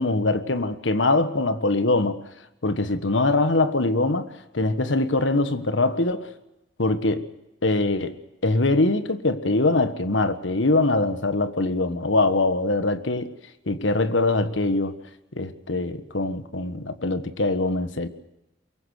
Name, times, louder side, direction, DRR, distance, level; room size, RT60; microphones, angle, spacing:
voice 1, 0.0-2.2 2.6-6.3 6.8-7.3 7.6-8.2 8.4-13.3 13.7-14.9 15.3-18.1, left 2 dB, 90° left, 1.5 m, -23 dB
23.5 x 22.0 x 6.5 m
head